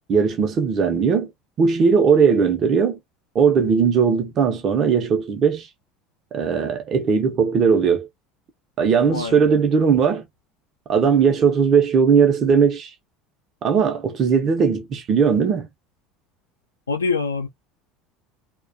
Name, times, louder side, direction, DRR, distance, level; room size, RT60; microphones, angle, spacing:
voice 1, 0.1-1.3 1.6-3.0 3.3-5.7 6.3-8.1 8.8-10.3 10.9-12.9 13.6-15.7, right 6 dB, 40° right, 0.5 m, -18 dB
voice 2, 9.1-9.6 16.9-17.5, left 4 dB, 85° left, 0.5 m, -25 dB
2.3 x 2.1 x 2.5 m
figure-of-eight pair, 70°, 0 cm